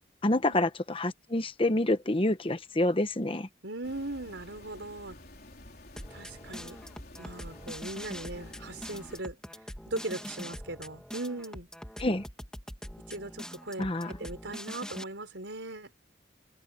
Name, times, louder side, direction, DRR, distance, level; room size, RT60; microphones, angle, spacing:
voice 1, 0.2-3.5 12.0-12.2 13.8-14.1, left 1 dB, 30° left, 1.1 m, -27 dB
voice 2, 3.6-5.2 6.1-6.8 7.2-9.4 9.9-11.7 13.1-15.9, right 2 dB, 70° right, 5.1 m, -39 dB
sound 1, 3.8-9.2, left 1 dB, 55° left, 4.1 m, -50 dB
sound 2, 6.0-15.0, equal, 5° left, 2.9 m, -43 dB
head